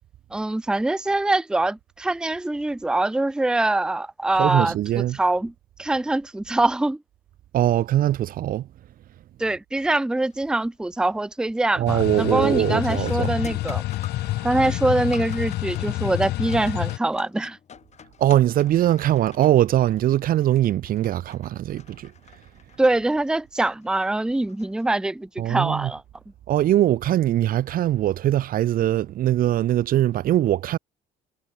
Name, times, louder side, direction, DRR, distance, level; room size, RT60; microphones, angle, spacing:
voice 1, 0.3-4.8 5.1-5.5 5.8-7.0 9.4-13.8 14.4-17.6 22.8-26.0, right 2 dB, 5° right, 0.6 m, -23 dB
voice 2, 4.4-5.2 7.5-8.6 11.8-13.4 18.2-22.1 25.4-25.9 26.5-30.8, right 12 dB, 55° right, 0.7 m, -21 dB
sound 1, 10.3-10.7 11.1-11.5 11.9-25.4 27.9-28.0 28.8-29.0, left 7 dB, 40° left, 6.2 m, -48 dB
sound 2, 11.9-17.0, left 17 dB, 75° left, 0.9 m, -28 dB
cardioid pair, 110°, 17 cm